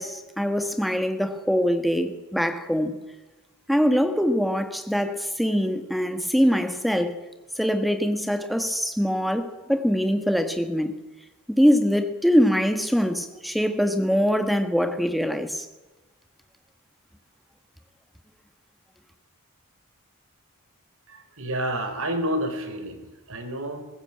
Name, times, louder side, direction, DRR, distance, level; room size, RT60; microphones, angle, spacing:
voice 1, 0.0-2.9 3.7-7.2 7.6-10.9 11.5-15.7, equal, ahead, 1.5 m, -23 dB
voice 2, 21.1-23.8, equal, 65° right, 4.3 m, -29 dB
21.0 x 15.5 x 8.8 m
head